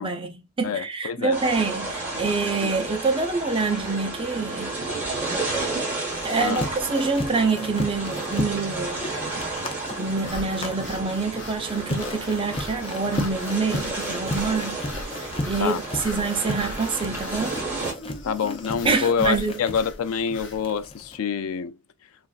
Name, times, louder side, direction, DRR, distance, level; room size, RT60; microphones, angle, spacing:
voice 1, 0.0-4.7 6.2-9.0 10.0-14.8 15.1-17.6 18.8-19.5, right 4 dB, 25° right, 0.6 m, -26 dB
voice 2, 0.6-1.4 2.6-2.7 6.4-6.7 15.6-15.8 18.2-21.7, left 6 dB, 85° left, 0.4 m, -26 dB
sound 1, 1.3-17.9, right 2 dB, 10° right, 1.3 m, -32 dB
sound 2, 6.1-21.2, left 1 dB, 25° left, 0.5 m, -35 dB
sound 3, 10.2-20.6, left 3 dB, 60° left, 0.8 m, -41 dB
3.1 x 2.5 x 2.3 m
head